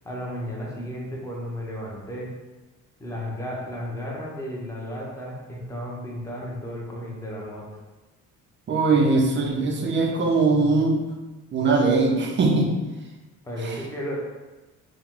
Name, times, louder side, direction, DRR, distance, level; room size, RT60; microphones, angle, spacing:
voice 1, 0.0-2.3 3.0-7.7 13.4-14.2, equal, 10° left, -4 dB, 0.8 m, -33 dB
voice 2, 8.7-11.1 11.5-12.8 13.6-13.8, right 3 dB, 35° right, 1 dB, 0.6 m, -21 dB
4.8 x 2.2 x 3.7 m, 1.1 s
cardioid pair, 170°, 33 cm